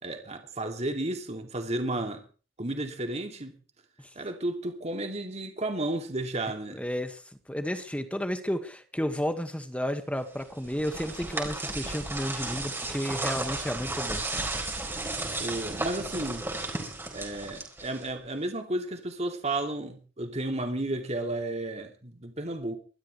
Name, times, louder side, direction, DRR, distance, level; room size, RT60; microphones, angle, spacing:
voice 1, 0.0-2.2 2.6-3.6 4.1-6.8 15.4-16.4 17.1-22.8, right 1 dB, 35° right, 2.7 m, -33 dB
voice 2, 6.7-7.2 7.5-14.2, equal, 5° left, 1.8 m, -32 dB
sound 1, 10.4-18.2, right 2 dB, 10° right, 4.4 m, -34 dB
24.5 x 13.0 x 3.3 m
head